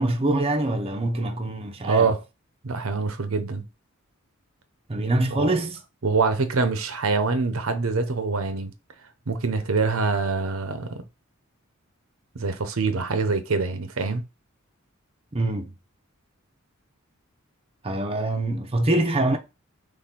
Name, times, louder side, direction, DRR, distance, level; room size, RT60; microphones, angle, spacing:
voice 1, 0.0-2.1 4.9-5.8 15.3-15.7 17.8-19.4, right 2 dB, 30° right, 0.7 m, -24 dB
voice 2, 1.8-2.2 2.6-3.6 5.3-5.5 6.0-8.7 9.3-11.0 12.3-14.2, right 4 dB, 75° right, 0.8 m, -25 dB
4.3 x 3.3 x 3.6 m
head